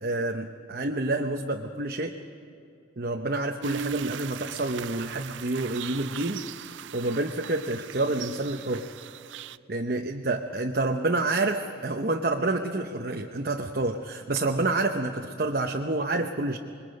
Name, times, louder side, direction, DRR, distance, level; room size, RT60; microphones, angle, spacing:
voice 1, 0.0-2.1 3.0-6.4 6.7-8.9 9.7-16.6, right 2 dB, 50° right, 3 dB, 0.9 m, -28 dB
sound 1, 3.6-9.6, right 8 dB, 70° right, 0.4 m, -38 dB
27.0 x 22.0 x 5.3 m, 2.7 s
head